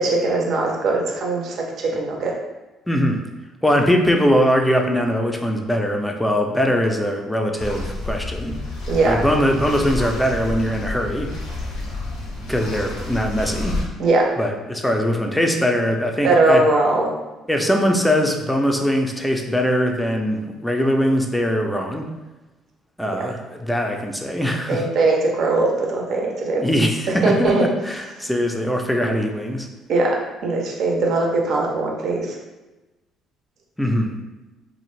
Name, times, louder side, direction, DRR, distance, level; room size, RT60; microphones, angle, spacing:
voice 1, 0.0-2.3 8.9-9.2 14.0-14.2 16.2-17.1 24.7-26.6 27.2-27.6 29.9-32.4, right 2 dB, 60° right, -1 dB, 0.5 m, -20 dB
voice 2, 2.9-3.2 3.6-8.6 9.1-11.3 12.5-13.8 14.4-16.6 17.5-22.0 23.0-24.8 26.6-29.7 33.8-34.1, equal, 5° left, 3 dB, 0.4 m, -21 dB
sound 1, 7.6-13.8, left 2 dB, 80° left, 0.7 m, -30 dB
2.5 x 2.0 x 3.1 m, 1.1 s
hypercardioid pair, 55°, 0 cm